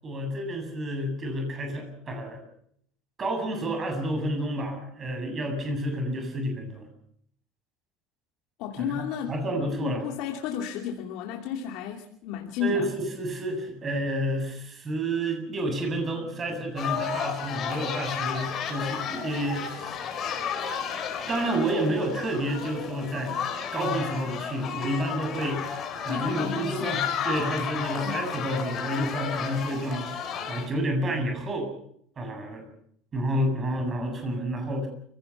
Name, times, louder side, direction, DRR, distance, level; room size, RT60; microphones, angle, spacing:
voice 1, 0.0-2.4 3.2-6.9 8.8-10.0 12.6-20.0 21.3-23.4 23.7-31.7 32.2-32.6 33.1-34.9, right 1 dB, 25° right, 4 dB, 7.8 m, -30 dB
voice 2, 8.6-12.9 26.1-27.0 28.0-28.2, left 8 dB, 60° left, 2 dB, 2.8 m, -33 dB
sound 1, 16.8-30.7, left 7 dB, 35° left, 4.5 m, -32 dB
29.0 x 17.5 x 5.9 m, 0.66 s
cardioid pair, 140°, 0 cm